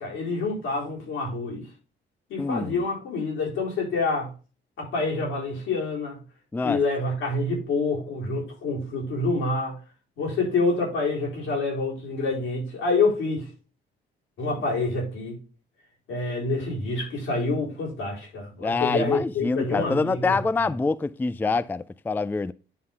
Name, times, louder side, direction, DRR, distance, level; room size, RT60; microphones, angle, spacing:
voice 1, 0.0-1.7 2.3-4.3 4.8-6.2 6.6-9.8 10.2-13.5 14.4-15.4 16.1-20.7, left 3 dB, 85° left, 4.2 m, -27 dB
voice 2, 2.4-2.7 6.5-6.8 18.6-22.5, left 3 dB, 10° left, 0.3 m, -25 dB
9.7 x 3.7 x 5.2 m
cardioid pair, 90°, 20 cm